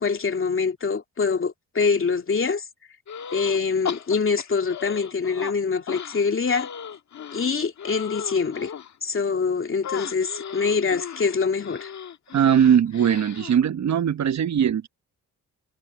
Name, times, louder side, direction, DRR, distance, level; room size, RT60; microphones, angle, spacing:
voice 1, 0.0-2.6 3.3-6.7 7.3-8.7 9.0-11.9, left 5 dB, 40° left, 2.6 m, -24 dB
sound 1, 3.1-3.6 3.8-5.5 5.9-8.9 9.8-13.6, left 8 dB, 60° left, 1.7 m, -36 dB
voice 2, 12.3-14.9, right 8 dB, 60° right, 1.0 m, -20 dB
cardioid pair, 75°, 31 cm